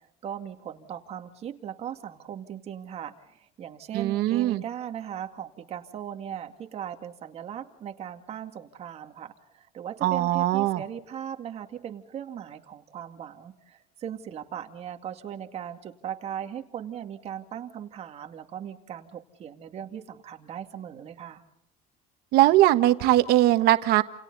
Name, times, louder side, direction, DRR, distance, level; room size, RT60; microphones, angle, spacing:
voice 1, 0.2-21.4, right 9 dB, 35° right, 6 dB, 2.3 m, -38 dB
voice 2, 3.9-4.6 10.0-10.8 22.3-24.0, right 15 dB, 65° right, 10 dB, 1.4 m, -20 dB
29.5 x 28.5 x 4.1 m, 0.80 s
cardioid pair, 165°, 18 cm